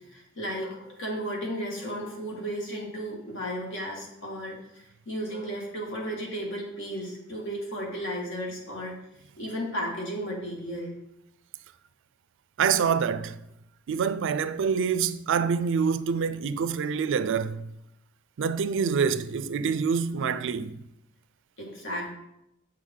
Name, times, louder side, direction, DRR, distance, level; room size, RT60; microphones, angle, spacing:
voice 1, 0.1-9.0 9.4-10.9 21.6-22.1, equal, 60° left, 2.0 m, -34 dB
voice 2, 12.6-13.4 13.9-17.6 18.4-20.7, right 6 dB, 60° right, 0.4 m, -26 dB
7.7 x 6.3 x 3.8 m
head